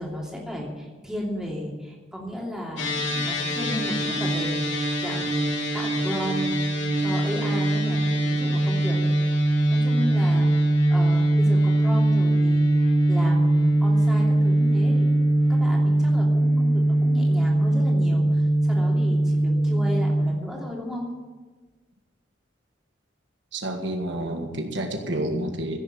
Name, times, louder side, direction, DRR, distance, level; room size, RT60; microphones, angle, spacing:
voice 1, 0.0-5.4 5.7-6.6 7.0-9.0 9.7-10.5 10.9-21.1, equal, 5° right, -3 dB, 2.8 m, -34 dB
sound 1, 2.8-20.2, right 1 dB, 85° left, 2.9 m, -21 dB
voice 2, 23.5-25.8, right 1 dB, 70° right, 3 dB, 1.7 m, -29 dB
16.0 x 7.2 x 7.9 m, 1.3 s
head